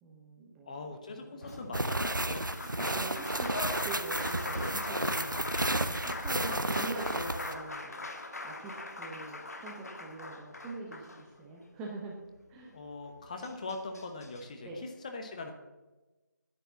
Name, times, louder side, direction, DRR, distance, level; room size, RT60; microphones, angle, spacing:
voice 1, 0.0-0.8 1.2-1.4 2.6-12.2 12.5-12.8 14.6-14.8, right 2 dB, 5° right, -2 dB, 0.8 m, -44 dB
voice 2, 0.6-2.5 12.7-15.5, left 3 dB, 20° left, 5 dB, 1.0 m, -41 dB
Applause, 1.4-11.7 13.0-13.1 13.4-14.4, left 2 dB, 55° left, 1.7 m, -41 dB
sound 1, 1.7-7.5, right 1 dB, 85° right, 1.0 m, -32 dB
9.9 x 9.1 x 7.3 m, 1.1 s
figure-of-eight pair, 160°, 10 cm